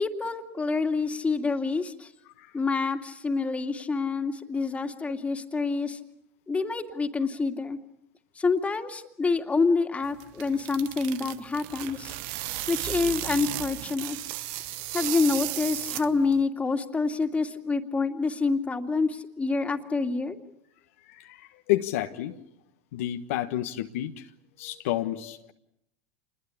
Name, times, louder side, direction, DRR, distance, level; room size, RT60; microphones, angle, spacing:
voice 1, 0.0-2.1 2.5-6.0 6.5-7.8 8.3-12.1 12.7-14.2 14.9-20.4, left 4 dB, 15° left, 6 dB, 2.5 m, -27 dB
sound 1, 10.0-16.4, right 15 dB, 65° right, 1.1 m, -34 dB
voice 2, 21.1-22.4 22.9-24.3 24.6-25.5, left 14 dB, 75° left, 6 dB, 1.4 m, -30 dB
27.5 x 21.5 x 8.6 m, 0.78 s
hypercardioid pair, 90°, 7 cm